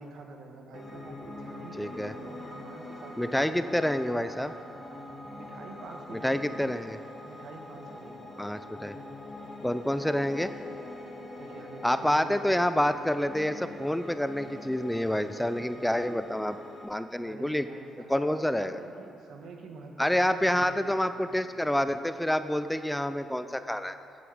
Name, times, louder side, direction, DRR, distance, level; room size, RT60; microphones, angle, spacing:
voice 1, 0.0-4.6 5.3-6.8 7.2-8.3 9.6-9.7 11.4-12.4 17.2-21.1, right 3 dB, 70° right, 3 dB, 1.4 m, -47 dB
Piano, 0.7-16.9, left 1 dB, 25° left, 1.7 m, -44 dB
voice 2, 1.8-2.1 3.2-4.5 6.2-7.0 8.4-8.9 9.6-10.5 11.8-16.6 16.8-17.7 18.1-18.8 20.0-24.0, left 1 dB, 5° left, 11 dB, 0.4 m, -28 dB
14.0 x 8.5 x 5.0 m, 2.6 s
cardioid pair, 90°, 0 cm